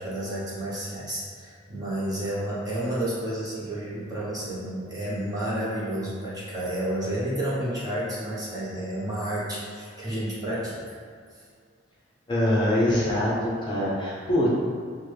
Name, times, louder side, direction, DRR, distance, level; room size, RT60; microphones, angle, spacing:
voice 1, 0.0-11.0, right 1 dB, 20° right, -8 dB, 0.9 m, -31 dB
voice 2, 12.3-14.5, left 1 dB, 20° left, -7 dB, 0.7 m, -24 dB
6.1 x 2.2 x 3.2 m, 2.2 s
head